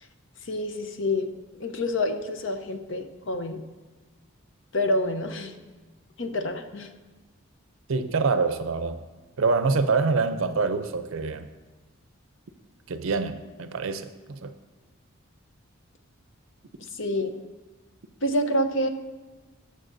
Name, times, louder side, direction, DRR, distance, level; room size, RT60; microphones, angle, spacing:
voice 1, 0.5-1.3 1.5-3.6 4.7-5.6 6.2-6.9 16.9-17.4 18.2-18.9, left 1 dB, 60° left, 7 dB, 0.7 m, -27 dB
voice 2, 7.9-9.0 9.4-11.5 12.9-14.5, right 4 dB, 70° right, 9 dB, 0.5 m, -25 dB
19.0 x 6.6 x 2.6 m, 1.3 s
head